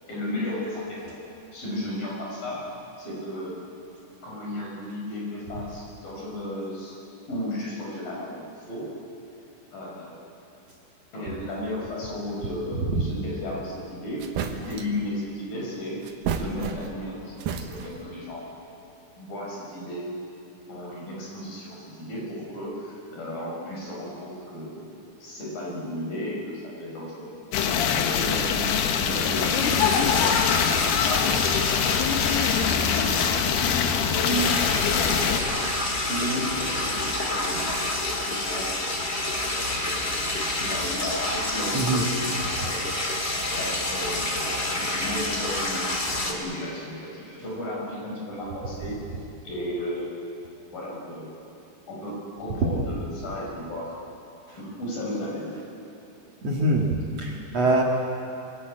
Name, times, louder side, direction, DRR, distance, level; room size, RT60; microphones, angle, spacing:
voice 1, 0.1-1.2 1.5-2.6 3.0-3.5 4.2-7.0 7.3-8.9 9.7-10.2 11.1-14.2 14.5-16.0 16.3-18.5 19.2-20.1 20.7-24.9 25.2-27.6 28.1-28.7 29.0-30.5 31.0-31.9 32.5-35.7 36.1-40.0 40.6-42.3 42.6-42.9 43.5-45.9 46.2-49.0 49.4-50.1 50.7-51.3 51.9-53.9 54.6-55.6, left 1 dB, 60° left, -3 dB, 7.5 m, -34 dB
sound 1, 14.2-15.0 16.0-17.1 17.4-18.1, right 6 dB, 65° right, 2.7 m, -31 dB
sound 2, 27.5-35.4, left 7 dB, 85° left, 3.3 m, -23 dB
sound 3, 29.3-46.3, left 1 dB, 25° left, 1.5 m, -29 dB
voice 2, 41.7-42.0 54.5-54.6 56.4-56.9 57.2-57.8, right 2 dB, 50° right, -2 dB, 2.5 m, -23 dB
24.0 x 17.0 x 8.9 m, 2.9 s
omnidirectional pair, 4.5 m